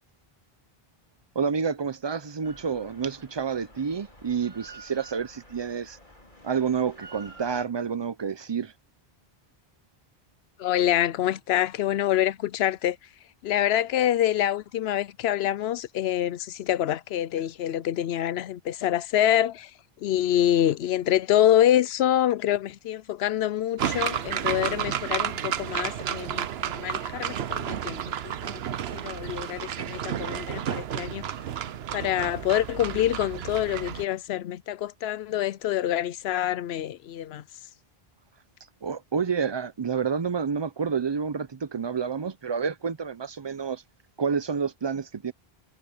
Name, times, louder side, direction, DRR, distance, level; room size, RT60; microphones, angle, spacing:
voice 1, 1.4-6.0 6.4-8.7 38.8-43.8 44.2-45.3, right 6 dB, 35° right, 0.5 m, -29 dB
Drill, 2.4-7.7, right 2 dB, 50° left, 5.0 m, -50 dB
voice 2, 10.6-13.0 13.4-19.7 20.0-31.3 31.9-37.4, left 12 dB, 85° left, 0.8 m, -26 dB
sound 1, 23.8-34.0, right 9 dB, 80° right, 1.0 m, -31 dB
omnidirectional pair, 1.0 m